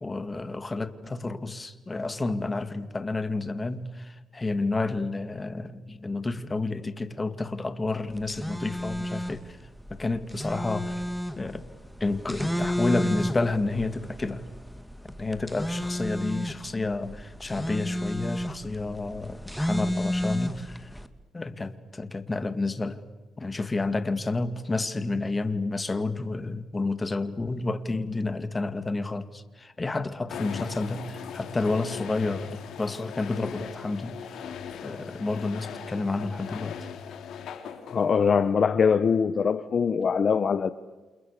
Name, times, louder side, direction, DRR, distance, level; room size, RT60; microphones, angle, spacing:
voice 1, 0.0-9.6 9.9-11.0 11.4-11.6 12.0-14.5 15.2-20.9 21.3-23.0 23.4-34.5 34.8-36.8, left 3 dB, 20° left, 2.2 m, -30 dB
sound 1, 8.1-21.1, equal, ahead, 2.1 m, -32 dB
sound 2, 30.3-38.5, left 7 dB, 75° left, 3.4 m, -39 dB
voice 2, 37.9-40.7, left 6 dB, 45° left, 1.0 m, -22 dB
29.5 x 28.5 x 6.8 m
cardioid pair, 90°, 0 cm